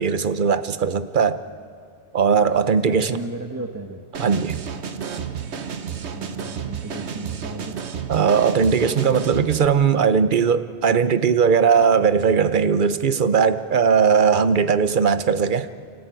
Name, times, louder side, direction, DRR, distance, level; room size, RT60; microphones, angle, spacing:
voice 1, 0.0-1.4 2.1-3.2 4.2-4.6 8.1-15.7, right 6 dB, 45° right, 12 dB, 0.9 m, -19 dB
voice 2, 2.6-4.0 6.1-7.8, right 2 dB, 15° right, 3 dB, 1.1 m, -34 dB
sound 1, 4.1-9.7, right 7 dB, 65° right, 1.3 m, -31 dB
29.5 x 14.0 x 9.2 m, 2.2 s
omnidirectional pair, 1.2 m